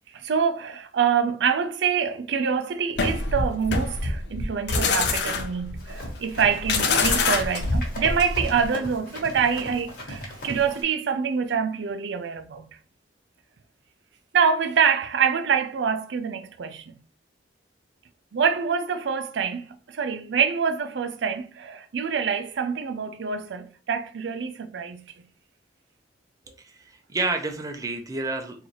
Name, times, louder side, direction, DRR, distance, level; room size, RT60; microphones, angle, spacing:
voice 1, 0.1-12.7 14.3-17.0 18.3-25.1, right 6 dB, 80° right, 0.4 m, -26 dB
sound 1, 3.0-8.7, left 3 dB, 70° left, 0.6 m, -25 dB
Run, 5.8-10.8, equal, 55° left, 1.3 m, -38 dB
voice 2, 26.6-28.7, right 3 dB, 20° right, 0.5 m, -30 dB
3.8 x 2.6 x 3.0 m
head